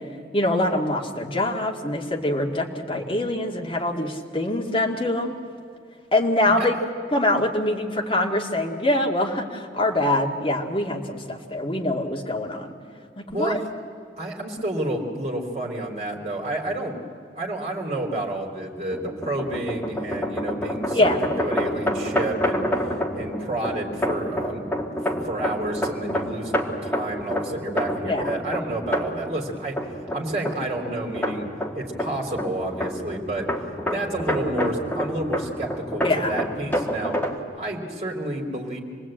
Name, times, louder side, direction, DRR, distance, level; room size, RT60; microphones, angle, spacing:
voice 1, 0.3-5.4 6.1-6.7 7.1-12.7 13.2-13.5 20.9-21.2 28.0-28.3 36.0-36.3, left 1 dB, 30° left, 0 dB, 2.1 m, -24 dB
voice 2, 13.3-13.6 14.2-17.0 17.4-21.1 21.4-22.6 23.1-24.7 25.1-26.5 26.8-29.8 30.1-31.5 31.7-33.5 33.9-37.2 37.5-38.8, right 1 dB, 35° right, 0 dB, 3.4 m, -30 dB
sound 1, 18.9-37.4, equal, 10° left, 1.8 m, -28 dB
27.0 x 19.5 x 8.9 m, 2.2 s
head